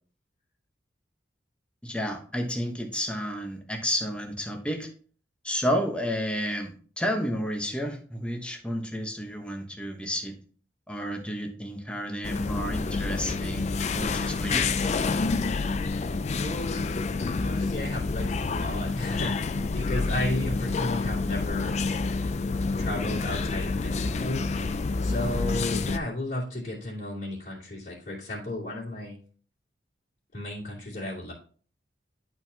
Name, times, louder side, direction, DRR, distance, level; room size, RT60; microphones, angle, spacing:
voice 1, 1.8-4.9 5.4-10.4 10.9-14.7, equal, 5° left, 2 dB, 1.1 m, -31 dB
sound 1, 12.2-26.0, left 3 dB, 40° left, 0.4 m, -28 dB
voice 2, 16.4-17.0 17.4-21.7 22.8-24.4 25.0-29.2 30.3-31.3, left 1 dB, 55° left, -10 dB, 2.8 m, -34 dB
11.0 x 4.6 x 2.8 m, 0.42 s
head